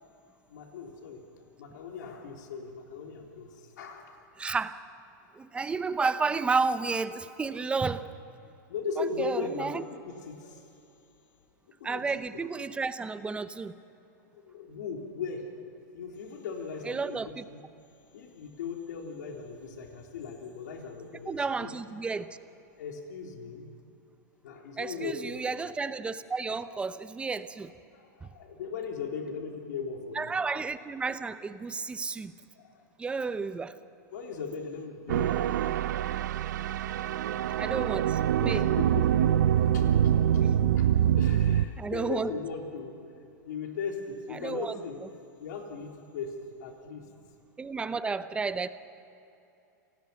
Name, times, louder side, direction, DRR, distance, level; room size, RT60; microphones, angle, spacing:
voice 1, 0.5-1.2 1.6-4.2 8.7-10.7 11.8-12.0 12.3-12.5 14.3-15.5 15.9-17.6 18.1-21.7 22.8-23.7 24.4-25.4 27.9-30.3 32.5-32.8 34.1-35.7 37.5-37.6 38.4-39.8 40.3-40.4 40.8-42.9 43.4-45.0 45.4-47.0, left 5 dB, 75° left, 1 dB, 3.5 m, -38 dB
voice 2, 4.4-4.8 5.3-8.1 9.0-9.8 11.8-13.7 16.9-17.4 21.3-22.3 24.8-27.7 28.2-28.3 30.1-32.3 33.0-33.8 37.6-38.7 40.3-40.7 41.8-42.3 44.3-44.8 47.6-48.7, right 4 dB, 10° right, 13 dB, 0.7 m, -32 dB
sound 1, 35.1-41.6, right 10 dB, 75° right, 0.7 m, -25 dB
28.0 x 19.0 x 5.8 m, 2.8 s
hypercardioid pair, 135°, 10 cm